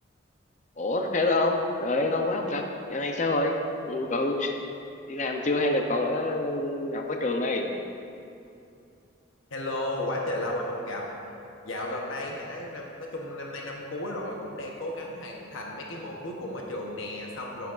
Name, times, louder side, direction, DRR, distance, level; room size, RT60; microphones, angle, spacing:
voice 1, 0.8-2.6 2.9-3.6 3.9-4.5 5.1-7.7, left 2 dB, 35° left, 3 dB, 0.5 m, -26 dB
voice 2, 9.5-11.1 11.6-17.7, left 1 dB, 80° left, -1 dB, 0.9 m, -34 dB
11.5 x 9.2 x 2.5 m, 2.6 s
head